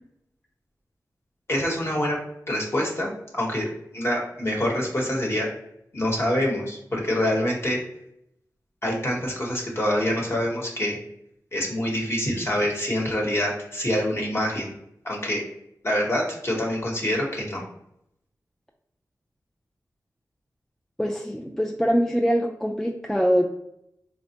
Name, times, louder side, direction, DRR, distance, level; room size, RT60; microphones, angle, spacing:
voice 1, 1.5-2.2 2.5-3.7 3.9-5.5 5.9-7.8 8.8-11.0 11.5-14.7 15.0-15.4 15.8-17.6, left 1 dB, 40° left, -1 dB, 1.0 m, -25 dB
voice 2, 21.0-23.5, equal, 5° left, 0 dB, 0.3 m, -23 dB
4.2 x 2.1 x 2.8 m, 0.77 s
wide cardioid pair, 90°, 7 cm